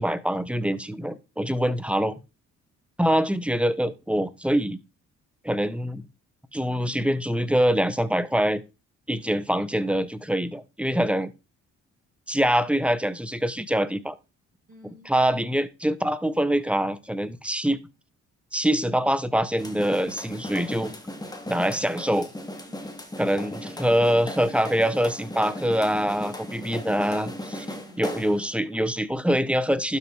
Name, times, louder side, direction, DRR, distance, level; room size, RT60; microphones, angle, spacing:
voice 1, 0.0-2.1 3.0-4.8 5.4-6.0 6.5-8.6 9.1-11.3 12.3-14.2 15.1-17.8 18.5-20.9 21.5-22.3 23.2-27.7 28.0-30.0, equal, 5° right, 1.0 m, -24 dB
voice 2, 1.6-1.9 14.7-15.1 27.5-28.1, equal, 30° right, 6.9 m, -52 dB
sound 1, 19.6-28.5, left 1 dB, 15° left, 2.7 m, -37 dB
12.0 x 5.4 x 4.9 m
cardioid pair, 90°, 30 cm